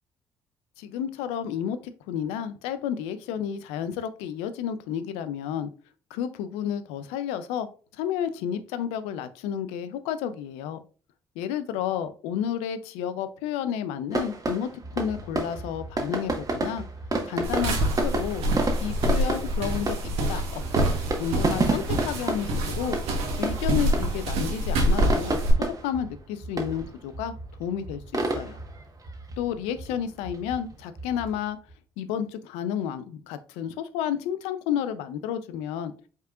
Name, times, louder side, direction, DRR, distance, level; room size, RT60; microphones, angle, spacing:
voice 1, 0.8-5.7 6.1-7.7 7.9-10.8 11.4-16.8 17.2-18.4 18.8-23.0 23.4-28.6 29.4-31.6 32.0-35.9, left 9 dB, 85° left, 12 dB, 0.4 m, -31 dB
sound 1, 14.1-31.7, right 3 dB, 35° right, 1.2 m, -31 dB
sound 2, 17.4-25.5, right 1 dB, 75° right, 1.0 m, -26 dB
5.4 x 3.6 x 2.4 m, 0.37 s
hypercardioid pair, 55°, 11 cm